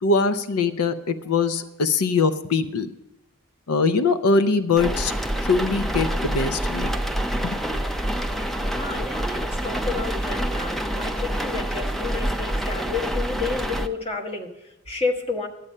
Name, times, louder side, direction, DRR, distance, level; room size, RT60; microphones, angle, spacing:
voice 1, 0.0-2.9 3.7-6.9 7.4-7.6, left 4 dB, 85° left, 12 dB, 0.5 m, -22 dB
sound 1, 4.8-13.9, right 1 dB, ahead, 0.4 m, -27 dB
voice 2, 8.3-15.5, left 4 dB, 25° left, 1 dB, 1.2 m, -31 dB
12.0 x 8.5 x 5.4 m, 0.94 s
head